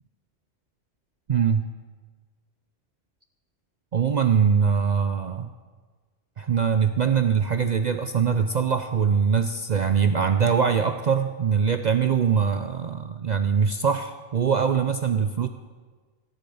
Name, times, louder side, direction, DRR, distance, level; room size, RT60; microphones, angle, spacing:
voice 1, 1.3-1.7 3.9-5.5 6.4-15.5, right 6 dB, 50° right, 8 dB, 0.5 m, -22 dB
15.5 x 6.9 x 9.3 m, 1.4 s
omnidirectional pair, 1.2 m